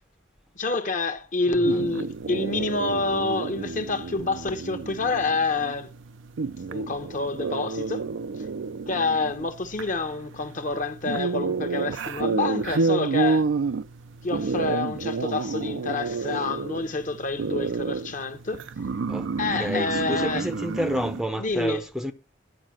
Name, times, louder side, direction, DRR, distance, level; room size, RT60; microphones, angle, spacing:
voice 1, 0.6-5.9 6.7-8.1 8.9-13.4 14.2-18.6 19.4-20.5 21.4-21.8, left 3 dB, 45° left, 0.9 m, -28 dB
voice 2, 1.5-1.8 19.1-19.3 19.6-22.1, equal, ahead, 0.6 m, -29 dB
sound 1, 1.6-21.2, right 4 dB, 80° right, 0.5 m, -30 dB
10.5 x 5.1 x 7.5 m
head